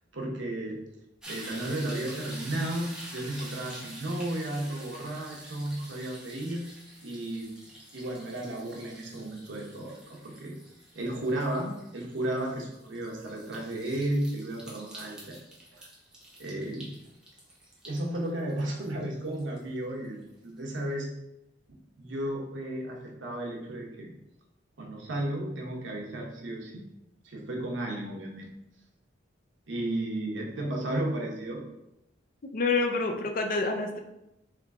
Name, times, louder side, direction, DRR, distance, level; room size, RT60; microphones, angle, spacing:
voice 1, 0.1-0.8 1.3-6.6 7.0-7.5 7.9-10.6 10.9-15.4 15.7-15.9 16.4-16.9 17.8-21.1 22.0-24.1 24.8-26.7 27.2-28.5 29.7-31.6, right 1 dB, 85° right, -1 dB, 1.0 m, -33 dB
sound 1, 1.2-20.3 20.7-20.8, right 1 dB, 5° right, 0.9 m, -47 dB
voice 2, 32.5-34.0, left 3 dB, 50° left, 4 dB, 0.5 m, -27 dB
3.5 x 3.4 x 3.6 m, 0.89 s
head